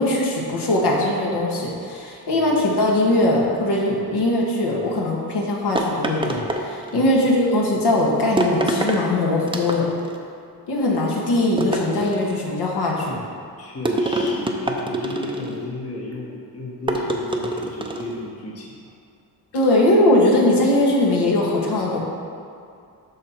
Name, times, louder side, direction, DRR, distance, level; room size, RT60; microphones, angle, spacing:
voice 1, 0.0-9.9 10.7-13.2 19.5-22.0, left 1 dB, 70° left, -3 dB, 1.8 m, -20 dB
voice 2, 2.3-2.6 6.9-7.1 13.6-18.8, left 2 dB, 35° left, -3 dB, 1.3 m, -34 dB
sound 1, 5.8-7.1 8.4-9.0 9.5-10.2 11.6-12.5 13.9-15.6 16.9-18.2, right 1 dB, 10° right, 0.7 m, -25 dB
12.5 x 4.3 x 4.5 m, 2.4 s
cardioid pair, 120°, 41 cm